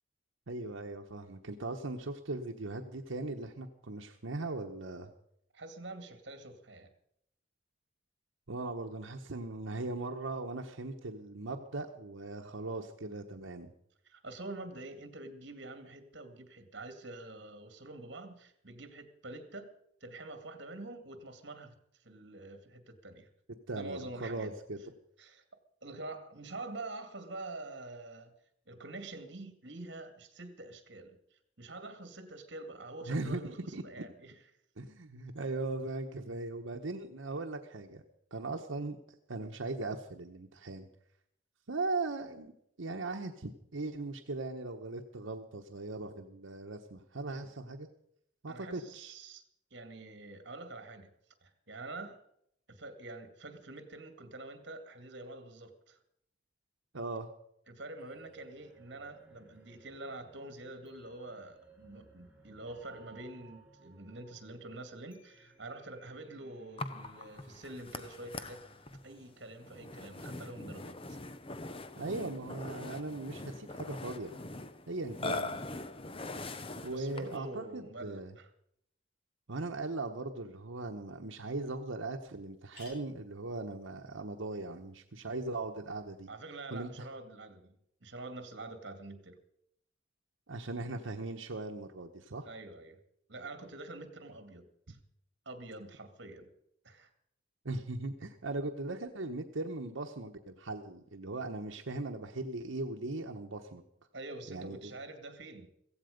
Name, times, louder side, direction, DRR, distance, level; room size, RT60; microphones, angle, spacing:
voice 1, 0.5-5.1 8.5-13.7 23.7-24.8 33.1-34.0 34.8-38.0 38.3-39.0 39.3-40.9 41.7-42.5 42.8-47.9 48.4-49.1 56.9-57.3 72.0-74.4 74.9-75.6 76.8-78.3 79.5-86.3 86.7-87.1 90.5-92.5 97.6-103.8 104.5-104.9, right 2 dB, 90° right, 3 dB, 1.1 m, -39 dB
voice 2, 5.5-6.9 14.0-19.7 20.0-23.3 23.7-24.5 25.2-25.4 25.8-28.3 28.7-34.3 48.5-49.4 49.7-51.1 51.4-52.2 52.7-56.0 57.7-68.6 69.0-71.2 76.9-78.5 86.3-87.8 88.0-89.4 92.5-93.0 93.3-95.0 95.5-96.5 96.8-97.1 104.1-105.8, right 2 dB, 60° right, 8 dB, 2.3 m, -46 dB
sound 1, 58.0-71.0, right 3 dB, 5° right, 3.2 m, -61 dB
Burping eructation, 66.8-77.5, left 2 dB, 30° left, 0.8 m, -42 dB
sound 2, 81.1-81.2 81.7-81.8 82.0-82.1 82.4-86.2, left 3 dB, 55° left, 4.9 m, -62 dB
15.5 x 15.5 x 5.2 m, 0.74 s
head